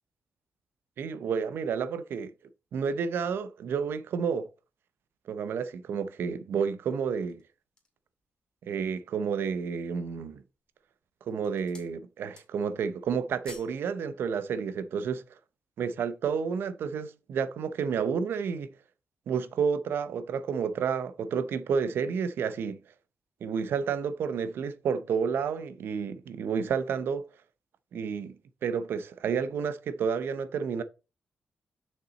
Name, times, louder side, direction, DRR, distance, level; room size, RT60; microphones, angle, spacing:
voice 1, 1.0-2.3 2.7-4.5 5.3-7.4 8.6-10.4 11.3-15.2 15.8-18.7 19.3-22.8 23.4-27.2 27.9-28.4 28.6-30.8, right 6 dB, 80° right, 0.7 m, -30 dB
sound 1, 7.1-8.1 8.7-8.8 9.2-9.8 10.5-10.8 11.2-12.0 12.2-12.8 13.0-13.8 14.1-14.3, left 3 dB, 25° left, 2.2 m, -52 dB
6.7 x 5.8 x 4.1 m
wide cardioid pair, 130°, 4 cm